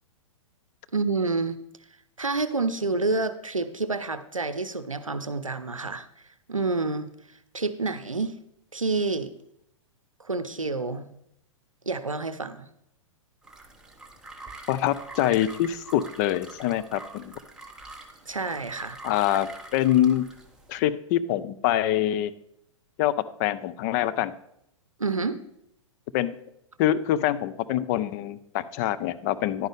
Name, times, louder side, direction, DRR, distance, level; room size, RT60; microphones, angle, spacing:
voice 1, 0.9-1.6 2.2-6.1 6.5-8.3 8.7-9.3 10.2-11.1 11.9-12.7 18.3-19.0 25.0-25.4, right 3 dB, 90° right, 12 dB, 0.6 m, -28 dB
sound 1, 13.4-20.8, right 2 dB, 5° right, 1.0 m, -45 dB
voice 2, 14.7-17.3 19.0-20.3 20.7-22.3 23.0-23.1 23.4-24.3 26.1-26.3 26.8-29.7, left 12 dB, 30° left, 14 dB, 0.5 m, -25 dB
11.0 x 8.9 x 3.5 m, 0.77 s
figure-of-eight pair, 110°, 17 cm